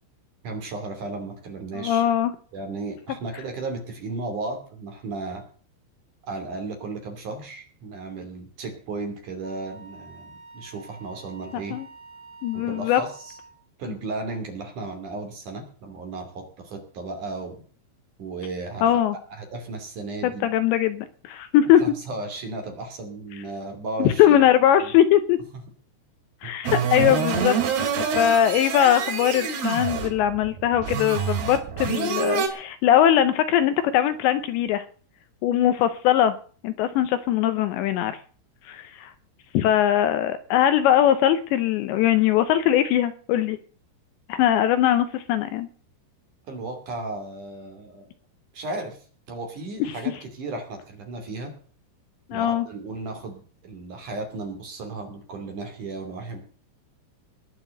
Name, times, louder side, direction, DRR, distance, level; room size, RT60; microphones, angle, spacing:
voice 1, 0.4-2.0 2.5-5.4 6.3-11.8 12.5-13.4 13.8-17.6 18.2-19.0 19.3-20.5 21.8-24.4 24.8-24.9 26.4-26.5 46.5-48.1 48.5-51.5 52.3-56.4, right 3 dB, 45° right, 4 dB, 3.7 m, -35 dB
voice 2, 1.7-2.3 11.7-11.9 12.4-13.0 18.8-19.2 20.2-21.8 24.0-25.4 26.4-27.6 28.0-34.8 35.4-36.3 36.6-38.2 38.7-39.1 39.5-43.6 44.3-45.7 52.3-52.7, left 11 dB, 80° left, 11 dB, 2.8 m, -21 dB
Wind instrument woodwind instrument, 9.4-13.6, right 3 dB, 20° right, 2.2 m, -47 dB
sound 1, 26.6-32.5, right 6 dB, 60° right, 3.6 m, -27 dB
20.0 x 6.8 x 7.8 m, 0.43 s
omnidirectional pair, 5.6 m